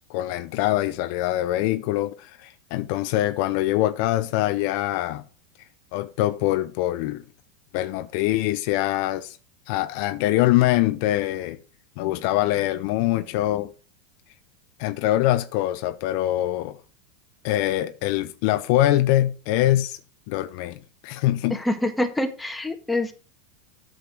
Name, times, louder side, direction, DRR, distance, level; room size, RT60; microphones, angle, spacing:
voice 1, 0.1-5.2 5.9-7.2 7.7-9.4 9.7-11.6 12.0-13.7 14.8-16.8 17.4-20.0 20.3-21.6, left 15 dB, 60° left, 0.6 m, -23 dB
voice 2, 21.5-23.1, left 1 dB, 5° left, 1.5 m, -26 dB
8.4 x 6.4 x 5.1 m
hypercardioid pair, 105°, 0 cm